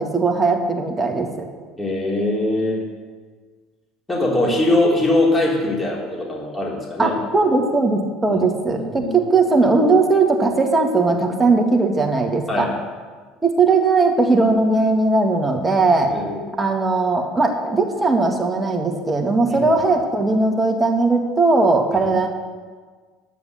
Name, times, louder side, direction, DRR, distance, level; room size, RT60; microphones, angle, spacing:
voice 1, 0.0-1.5 7.0-12.7 13.4-16.1 16.6-22.3, right 3 dB, 15° right, 3 dB, 2.1 m, -18 dB
voice 2, 1.8-2.8 4.1-7.1 8.3-8.4 8.7-9.1 12.5-12.7 16.1-16.4 19.5-19.6 21.9-22.1, left 2 dB, 15° left, -3 dB, 3.6 m, -21 dB
10.5 x 9.4 x 7.0 m, 1.5 s
figure-of-eight pair, 65°, 0 cm